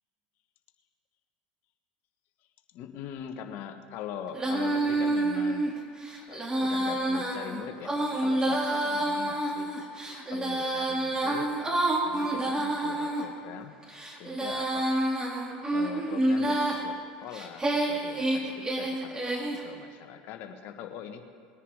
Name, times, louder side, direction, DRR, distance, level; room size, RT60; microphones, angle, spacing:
voice 1, 2.7-5.7 6.3-9.7 10.3-11.5 12.0-13.7 14.1-14.9 15.7-19.3 19.6-21.2, left 8 dB, 60° left, 7 dB, 1.4 m, -42 dB
Female singing, 4.3-13.2 13.8-16.8 17.3-19.6, right 1 dB, 20° right, 2.2 m, -28 dB
20.5 x 10.0 x 4.9 m, 2.1 s
hypercardioid pair, 90°, 4 cm